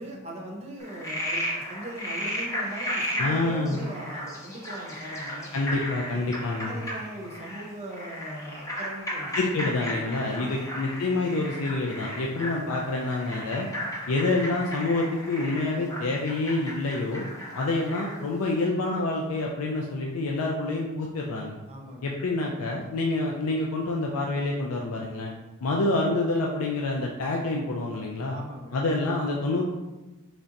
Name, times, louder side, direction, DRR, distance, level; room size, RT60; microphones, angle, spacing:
voice 1, 0.0-5.5 6.1-6.2 6.6-9.3 9.6-10.8 21.7-22.1 28.3-28.8, right 1 dB, 30° right, -1 dB, 0.6 m, -40 dB
Frog, 0.8-18.2, equal, 15° left, 0.6 m, -34 dB
voice 2, 3.2-3.8 5.5-6.8 9.3-13.7 14.1-17.2 17.6-21.5 22.0-25.3 25.6-28.4 28.7-29.6, left 2 dB, 75° left, -1 dB, 0.4 m, -27 dB
3.3 x 2.5 x 4.0 m, 1.1 s
head